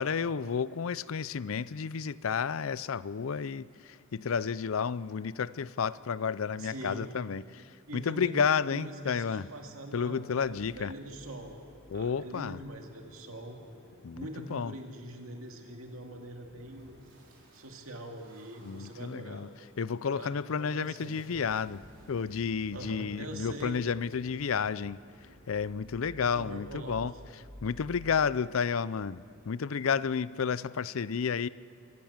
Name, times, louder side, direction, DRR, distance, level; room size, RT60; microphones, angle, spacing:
voice 1, 0.0-9.5 9.9-10.9 11.9-12.6 14.0-14.7 18.6-19.5 19.8-21.8 22.1-25.0 25.5-27.1 27.6-31.5, left 6 dB, 75° left, 18 dB, 0.5 m, -31 dB
voice 2, 6.6-7.1 7.9-8.4 8.7-11.6 11.9-13.6 14.1-17.0 17.5-19.5 20.1-21.5 22.7-23.8 26.2-27.0, right 1 dB, 85° right, 2 dB, 2.3 m, -43 dB
sound 1, 10.4-29.3, equal, 65° right, 4.5 m, -55 dB
25.0 x 15.0 x 7.3 m, 2.6 s
head